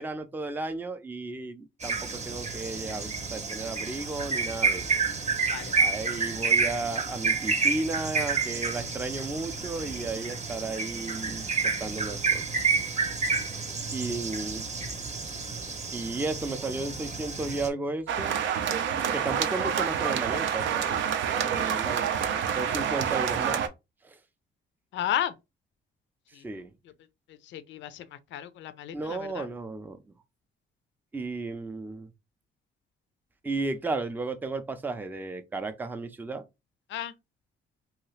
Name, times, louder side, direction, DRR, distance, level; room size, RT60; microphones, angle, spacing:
voice 1, 0.0-4.8 5.8-12.4 13.9-14.7 15.9-18.4 19.1-21.0 21.4-22.1 22.5-23.6 24.0-24.2 26.4-26.7 28.9-30.0 31.1-32.1 33.4-36.4, right 3 dB, 10° right, 0.4 m, -34 dB
sound 1, 1.8-17.7, right 4 dB, 35° right, 0.7 m, -29 dB
voice 2, 5.5-5.8 24.9-25.3 26.3-26.4 27.5-28.1 28.3-29.5 36.9-37.1, left 11 dB, 70° left, 0.4 m, -33 dB
sound 2, 18.1-23.7, right 8 dB, 70° right, 0.5 m, -28 dB
2.7 x 2.3 x 3.1 m
cardioid pair, 90°, 20 cm